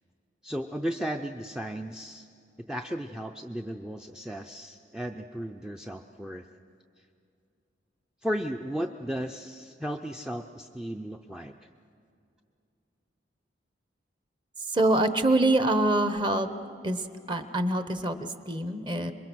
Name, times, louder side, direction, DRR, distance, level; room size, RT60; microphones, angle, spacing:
voice 1, 0.4-2.3 2.7-6.4 7.0-7.1 8.2-11.7, equal, 5° right, 4 dB, 0.5 m, -35 dB
voice 2, 14.6-16.5 16.8-19.1, right 2 dB, 25° right, 9 dB, 1.0 m, -25 dB
26.5 x 22.5 x 6.2 m, 2.5 s
head